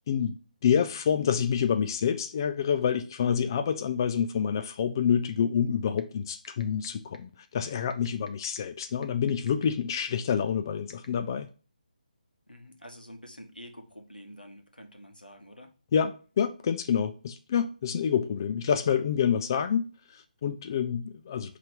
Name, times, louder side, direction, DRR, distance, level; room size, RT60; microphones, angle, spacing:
voice 1, 0.1-0.4 0.6-11.5 15.9-19.8 20.1-21.6, left 7 dB, 25° left, 0.3 m, -27 dB
sound 1, 6.0-6.1 6.4-6.9 7.1-7.2 7.9-9.6 10.0-10.1 10.9-11.1, left 2 dB, 60° left, 1.0 m, -49 dB
voice 2, 12.5-15.7, equal, 85° left, 1.3 m, -48 dB
5.8 x 3.3 x 5.2 m
figure-of-eight pair, 150°, 5 cm